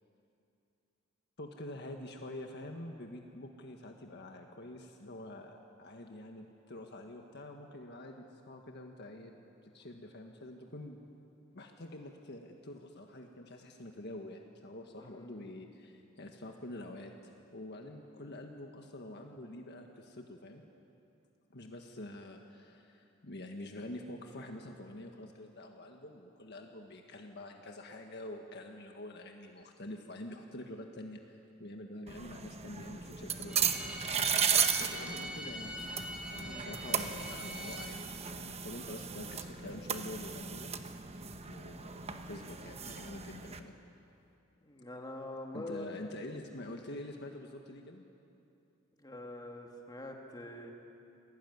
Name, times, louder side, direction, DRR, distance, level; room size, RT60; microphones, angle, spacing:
voice 1, 1.4-9.3 9.6-11.0 11.5-20.6 21.5-33.7 34.8-38.0 38.3-40.7 41.4-43.8 45.5-48.0, left 1 dB, 55° left, 3 dB, 1.6 m, -46 dB
voice 2, 15.0-15.4 36.4-36.7 44.6-46.0 49.0-50.7, left 1 dB, 20° left, 1 dB, 2.6 m, -45 dB
sound 1, 32.1-43.6, right 7 dB, 30° right, 1.1 m, -36 dB
Bowed string instrument, 33.5-37.9, left 1 dB, 5° right, 3.4 m, -44 dB
27.5 x 18.5 x 9.5 m, 2.7 s
head